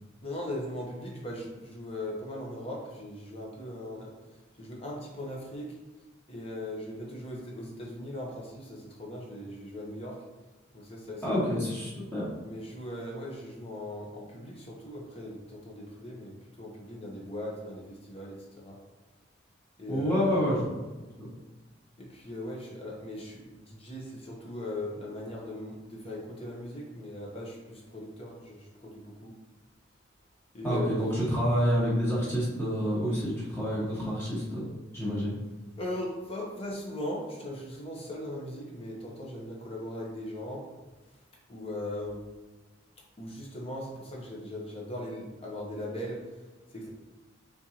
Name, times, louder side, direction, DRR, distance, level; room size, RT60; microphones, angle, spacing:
voice 1, 0.2-4.1 4.5-5.8 6.3-10.2 10.7-11.6 12.4-18.8 19.8-20.4 22.0-29.3 30.5-31.0 35.8-40.6 41.5-42.2 43.2-46.9, left 1 dB, 30° left, -2 dB, 1.0 m, -39 dB
voice 2, 11.2-12.2 19.9-20.8 21.2-21.3 30.6-35.3, equal, 10° left, -8 dB, 1.5 m, -28 dB
4.5 x 3.7 x 2.9 m, 1.2 s
head